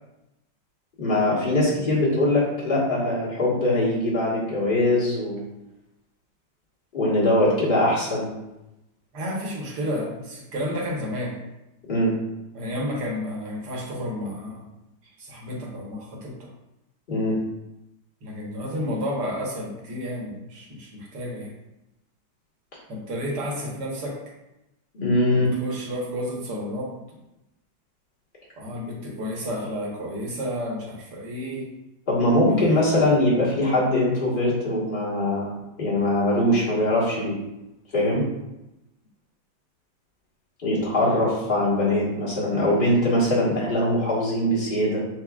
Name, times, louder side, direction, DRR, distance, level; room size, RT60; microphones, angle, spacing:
voice 1, 1.0-5.4 6.9-8.3 11.9-12.1 17.1-17.4 24.9-25.5 32.1-35.5 35.8-37.3 37.9-38.2 40.6-45.0, left 1 dB, 30° left, -7 dB, 1.5 m, -22 dB
voice 2, 9.1-11.4 12.5-14.7 15.2-16.3 18.2-21.5 22.9-24.2 25.3-26.9 28.6-31.7 32.5-32.8, equal, 60° right, -3 dB, 1.7 m, -31 dB
8.1 x 2.7 x 2.4 m, 0.93 s
omnidirectional pair, 2.1 m